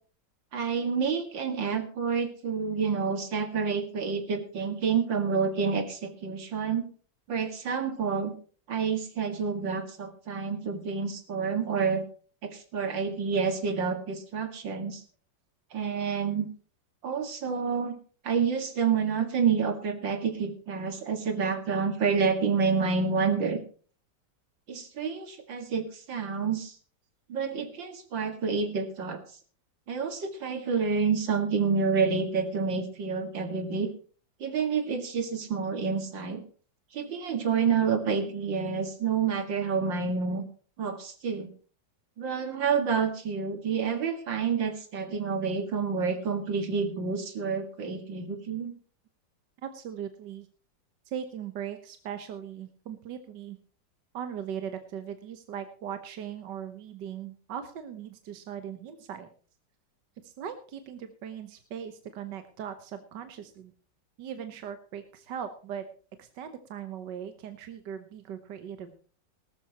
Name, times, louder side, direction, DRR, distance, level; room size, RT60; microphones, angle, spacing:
voice 1, 0.5-6.8 7.3-8.3 8.7-12.0 12.4-15.0 15.7-16.5 17.0-17.9 18.2-23.6 24.7-26.7 27.3-29.2 29.9-33.9 34.4-36.4 36.9-40.4 40.8-41.5 42.2-48.7, right 5 dB, 90° right, 7 dB, 2.7 m, -28 dB
voice 2, 49.6-50.5 51.1-53.6 54.1-59.3 60.2-63.7 64.2-65.9 66.2-69.0, right 8 dB, 70° right, 9 dB, 1.7 m, -39 dB
18.5 x 13.0 x 3.0 m, 0.40 s
omnidirectional pair, 2.0 m